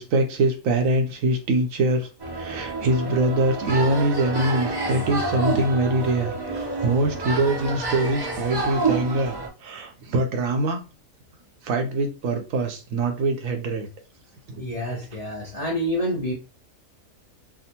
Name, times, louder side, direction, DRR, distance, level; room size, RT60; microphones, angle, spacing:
voice 1, 0.0-10.8 11.6-13.9 14.5-14.6, right 2 dB, 75° right, 5 dB, 1.0 m, -24 dB
sound 1, 2.2-9.5, right 3 dB, 30° right, 0.5 m, -28 dB
voice 2, 14.6-16.3, equal, 35° left, -3 dB, 0.7 m, -27 dB
3.4 x 2.1 x 2.7 m, 0.31 s
omnidirectional pair, 1.4 m